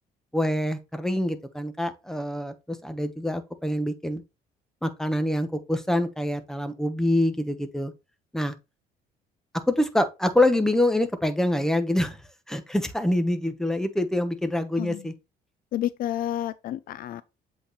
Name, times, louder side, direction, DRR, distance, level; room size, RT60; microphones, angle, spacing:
voice 1, 0.3-4.2 4.8-7.9 8.3-8.5 9.7-12.2 12.5-15.1, left 1 dB, 5° left, 1.0 m, -25 dB
voice 2, 15.7-17.2, left 12 dB, 60° left, 0.4 m, -30 dB
7.7 x 4.2 x 3.1 m
cardioid pair, 110°, 17 cm